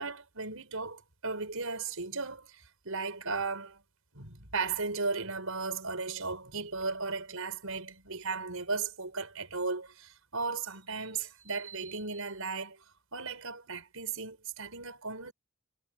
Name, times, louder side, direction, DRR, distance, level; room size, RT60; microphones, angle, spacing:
voice 1, 0.0-3.8 4.1-12.8 13.1-15.3, right 4 dB, 85° right, 6.0 m, -36 dB
head